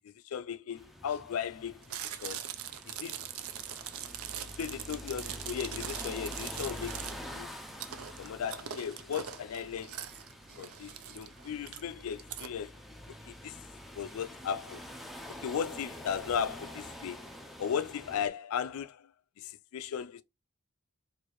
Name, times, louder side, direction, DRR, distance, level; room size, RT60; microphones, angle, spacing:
voice 1, 0.2-2.4 2.9-3.2 4.6-7.5 8.2-10.0 10.6-12.7 13.3-13.6 14.0-14.9 15.4-17.3 17.6-19.1 19.4-20.2, left 7 dB, 70° left, 0.3 m, -36 dB
sound 1, 0.8-18.3, equal, ahead, 0.4 m, -46 dB
Chewing mastication, 1.8-12.5, right 10 dB, 70° right, 0.4 m, -42 dB
4.5 x 2.5 x 3.0 m
head